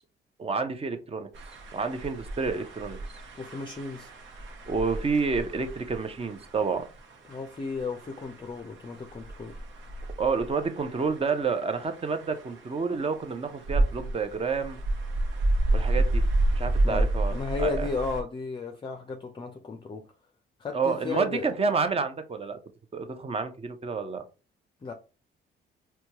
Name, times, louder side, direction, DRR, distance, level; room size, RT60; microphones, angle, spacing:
voice 1, 0.4-1.3 1.7-3.0 4.7-6.8 10.2-14.8 15.7-16.2 16.5-17.9 20.7-22.6 22.9-24.2, right 4 dB, 30° right, 0.6 m, -29 dB
sound 1, 1.3-18.2, right 2 dB, 70° right, 0.9 m, -31 dB
voice 2, 3.4-4.1 7.3-9.6 16.8-20.0 20.6-21.5 24.8-24.9, left 4 dB, 25° left, 0.5 m, -34 dB
4.3 x 2.3 x 2.9 m
cardioid pair, 90°, 20 cm